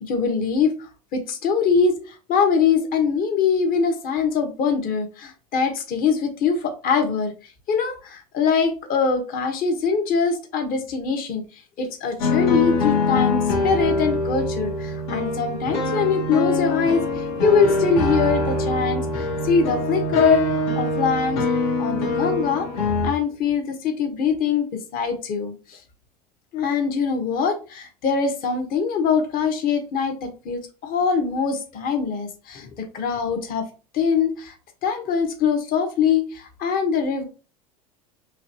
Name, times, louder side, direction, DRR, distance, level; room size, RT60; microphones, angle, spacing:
voice 1, 0.0-7.3 7.7-11.4 11.8-21.4 21.8-22.7 23.0-25.8 26.5-33.7 33.9-34.5 34.8-37.2, left 6 dB, 50° left, 5 dB, 1.5 m, -23 dB
sound 1, 12.2-23.1, left 2 dB, 70° left, 1.7 m, -23 dB
4.7 x 3.2 x 3.0 m, 0.34 s
hypercardioid pair, 95°, 19 cm